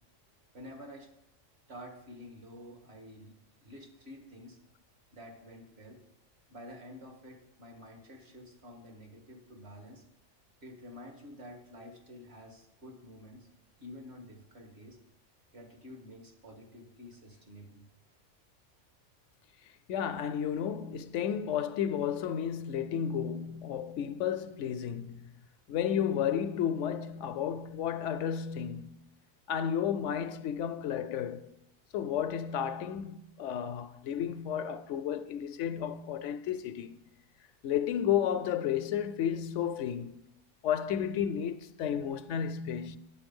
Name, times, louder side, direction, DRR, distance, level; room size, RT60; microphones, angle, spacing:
voice 1, 0.5-1.1 1.7-3.3 3.6-4.6 5.1-6.0 6.5-10.0 10.6-13.5 13.8-15.0 15.5-17.9, left 1 dB, 60° right, 2.0 m, -49 dB
voice 2, 19.9-25.3 25.7-29.0 29.5-31.5 31.9-36.9 37.6-40.2 40.6-43.0, left 9 dB, 75° left, 0.9 m, -32 dB
10.0 x 8.2 x 5.3 m
omnidirectional pair, 1.3 m